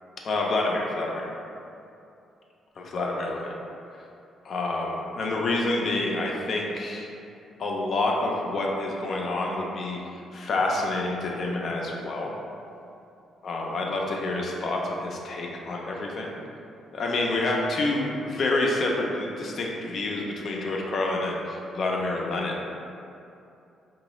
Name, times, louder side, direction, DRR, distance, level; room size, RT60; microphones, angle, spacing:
voice 1, 0.2-1.3 2.8-3.6 4.4-7.1 7.6-12.3 13.4-16.3 16.9-22.6, left 2 dB, 55° left, -1 dB, 0.5 m, -28 dB
3.8 x 2.2 x 3.0 m, 2.7 s
cardioid pair, 90°, 0 cm